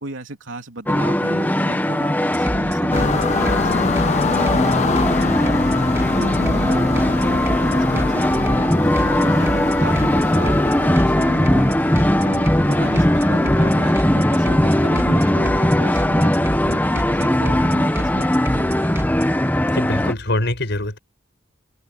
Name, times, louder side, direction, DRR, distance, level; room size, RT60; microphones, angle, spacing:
voice 1, 0.0-5.6 6.2-8.7 9.0-11.8 12.2-18.7, right 2 dB, 85° right, 3.3 m, -34 dB
sound 1, 0.9-20.1, left 1 dB, 10° left, 1.3 m, -19 dB
sound 2, 2.3-19.5, equal, 15° right, 2.3 m, -30 dB
sound 3, 2.9-14.0, left 4 dB, 35° left, 0.5 m, -26 dB
voice 2, 19.7-21.0, left 1 dB, 65° left, 6.2 m, -23 dB
head